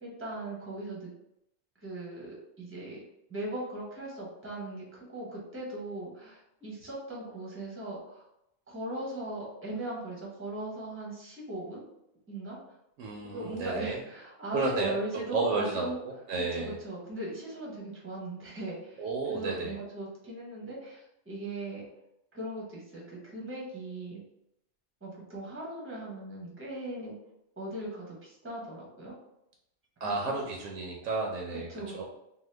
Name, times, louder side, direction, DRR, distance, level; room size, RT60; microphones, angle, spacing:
voice 1, 0.0-1.1 1.8-3.0 3.3-8.2 8.7-11.9 12.3-12.6 13.3-16.0 16.5-21.8 22.3-24.2 25.0-27.2 27.6-29.1 30.0-30.5 31.5-32.0, right 1 dB, 15° right, -4 dB, 0.7 m, -39 dB
voice 2, 13.0-14.0 14.5-15.0 15.3-15.9 16.3-16.7 19.0-19.7 30.0-31.7 31.9-32.0, right 3 dB, 90° right, -1 dB, 0.9 m, -31 dB
2.8 x 2.2 x 3.2 m, 0.82 s
omnidirectional pair, 1.2 m